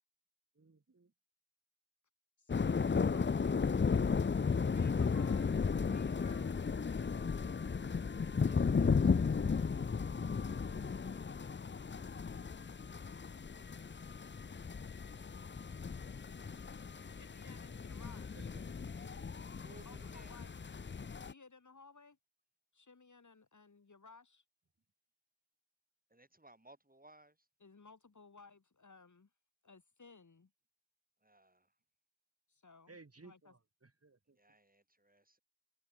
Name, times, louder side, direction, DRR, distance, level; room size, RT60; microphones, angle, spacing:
voice 1, 0.6-1.1 18.5-18.6 32.9-34.4, right 3 dB, 40° right, 2.0 m, -59 dB
voice 2, 2.4-3.9 4.7-7.3 17.2-18.5 19.0-19.2 19.6-20.5 21.0-22.2 22.7-24.4 27.6-29.3 29.6-30.5 32.5-33.0 33.2-33.5, left 4 dB, 55° left, 1.9 m, -59 dB
sound 1, 2.5-21.3, left 5 dB, 30° left, 0.5 m, -35 dB
voice 3, 8.2-9.9 10.6-11.5 19.6-20.4 26.1-27.5 31.2-31.8 34.3-35.4, right 1 dB, 25° right, 6.9 m, -62 dB
wide cardioid pair, 80°, 36 cm